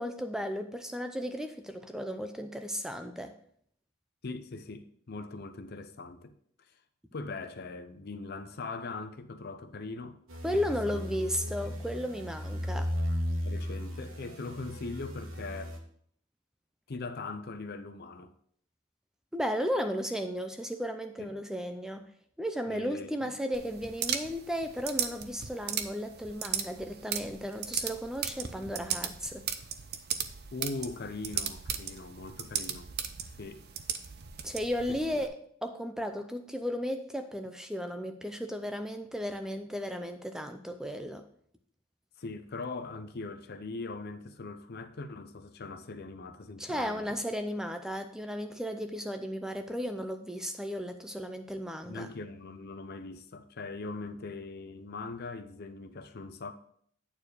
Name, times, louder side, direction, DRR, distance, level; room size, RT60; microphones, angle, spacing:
voice 1, 0.0-3.3 10.4-12.9 19.3-22.1 22.4-29.5 34.4-41.2 46.6-52.1, equal, 5° right, 0.4 m, -35 dB
voice 2, 4.2-6.3 7.1-10.2 10.5-11.0 11.4-11.8 13.4-15.8 16.9-18.3 21.2-21.3 22.7-23.3 30.5-32.9 33.4-33.7 34.9-35.0 42.2-47.2 51.8-56.5, left 3 dB, 50° left, 0.6 m, -41 dB
sound 1, 10.3-15.8, equal, 70° right, 1.2 m, -35 dB
sound 2, 23.5-35.3, right 8 dB, 50° right, 0.6 m, -37 dB
8.8 x 4.6 x 4.8 m
head